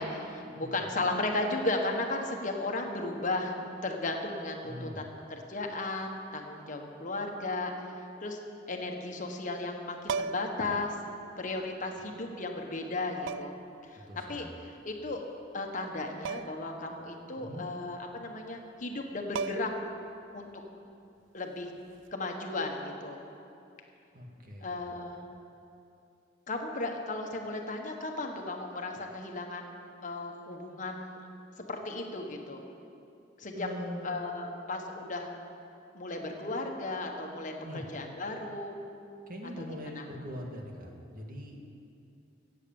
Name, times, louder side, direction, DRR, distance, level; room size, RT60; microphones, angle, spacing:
voice 1, 0.0-3.6 3.8-7.7 8.2-8.4 8.7-10.9 11.4-13.5 13.8-14.0 14.3-14.5 14.8-15.2 15.5-19.7 20.3-20.5 21.3-21.7 22.1-23.2 24.6-25.2 26.5-29.7 30.0-31.2 31.6-32.6 33.4-33.7 34.0-35.3 35.9-38.8 39.8-40.0, left 2 dB, 45° left, 3 dB, 1.5 m, -35 dB
voice 2, 4.6-5.0 14.1-14.5 17.4-17.6 24.1-24.8 33.6-34.1 37.6-37.9 39.3-41.6, equal, 50° right, 1 dB, 1.9 m, -42 dB
sound 1, 10.0-10.6 12.0-12.1 13.3-13.7 16.2-16.7 17.0-17.1 18.9-19.0 19.3-19.9 21.9-22.1, right 6 dB, 85° right, 0.3 m, -36 dB
16.5 x 8.4 x 7.2 m, 2.6 s
head